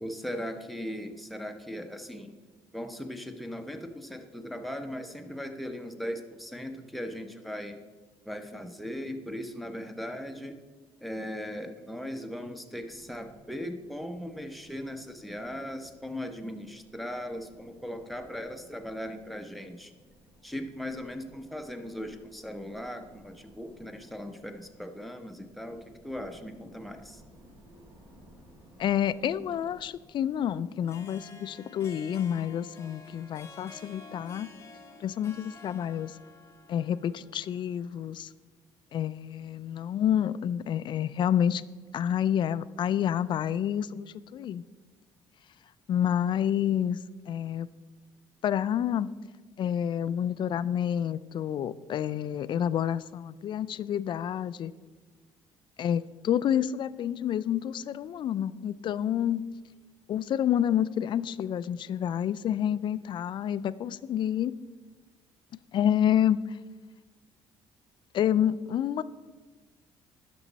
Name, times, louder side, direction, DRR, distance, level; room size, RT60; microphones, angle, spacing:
voice 1, 0.0-2.4 2.7-7.8 8.2-10.6 11.0-19.9 20.4-27.2, equal, ahead, 5 dB, 0.9 m, -38 dB
sound 1, 12.8-31.2, equal, 40° right, 2.6 m, -58 dB
voice 2, 28.8-34.5 35.0-36.2 36.7-38.3 38.9-41.6 41.9-44.6 45.9-47.0 47.3-47.7 48.4-49.1 49.6-54.7 55.8-59.4 60.1-64.6 65.7-66.6 68.1-69.0, left 10 dB, 50° left, 16 dB, 0.3 m, -28 dB
Harp, 30.7-38.0, left 4 dB, 25° left, 1.1 m, -51 dB
11.0 x 6.1 x 4.1 m, 1.3 s
cardioid pair, 90°, 10 cm